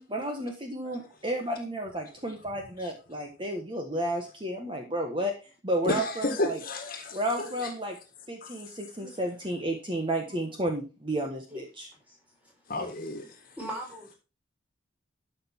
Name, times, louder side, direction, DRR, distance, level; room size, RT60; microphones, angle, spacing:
voice 1, 0.0-5.3 5.6-6.6 7.1-7.9 8.3-11.6, right 1 dB, 25° right, 3 dB, 1.3 m, -32 dB
voice 2, 5.8-7.7 12.7-13.2, left 2 dB, 45° left, 5 dB, 1.7 m, -31 dB
voice 3, 9.0-9.4 11.5-11.7 12.1-12.5 13.4-14.2, equal, 10° right, -1 dB, 3.9 m, -41 dB
12.5 x 5.8 x 4.4 m, 0.31 s
head